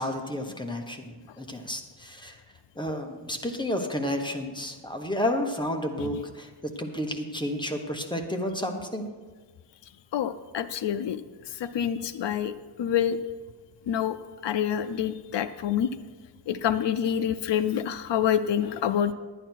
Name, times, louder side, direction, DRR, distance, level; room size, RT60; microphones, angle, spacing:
voice 1, 0.0-2.4 2.8-6.5 6.8-9.1, left 1 dB, 10° left, 3 dB, 1.1 m, -31 dB
voice 2, 10.1-11.2 11.5-12.5 12.8-13.2 13.9-14.2 14.4-15.9 16.5-19.1, left 9 dB, 75° left, 10 dB, 0.5 m, -27 dB
11.0 x 10.0 x 4.6 m, 1.4 s
wide cardioid pair, 110°, 42 cm